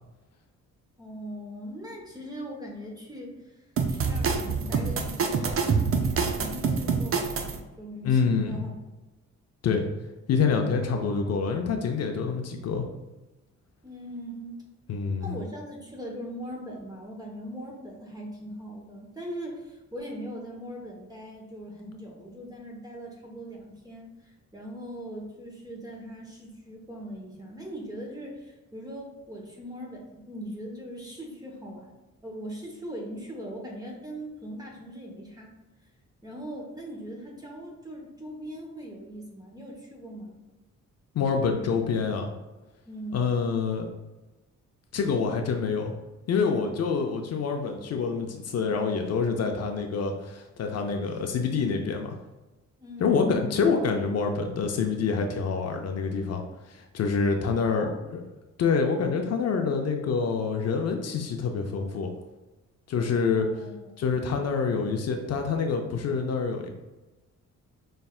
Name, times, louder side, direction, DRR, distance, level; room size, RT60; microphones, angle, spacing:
voice 1, 1.0-3.6 3.9-8.7 13.8-14.6 15.2-31.9 32.2-35.5 36.2-40.4 42.8-43.4 52.8-53.6 57.6-58.0 63.3-64.2, equal, 15° right, -1 dB, 1.1 m, -40 dB
sound 1, 3.8-7.6, right 5 dB, 45° right, 0.5 m, -26 dB
voice 2, 8.0-8.6 9.6-9.9 10.3-12.8 14.9-15.4 41.1-42.3 43.1-43.9 44.9-45.9 46.3-52.2 53.0-58.2 58.6-62.1 62.9-63.5 64.0-66.7, left 5 dB, 55° left, 4 dB, 0.5 m, -26 dB
5.5 x 3.3 x 2.3 m, 1.1 s
cardioid pair, 105°, 30 cm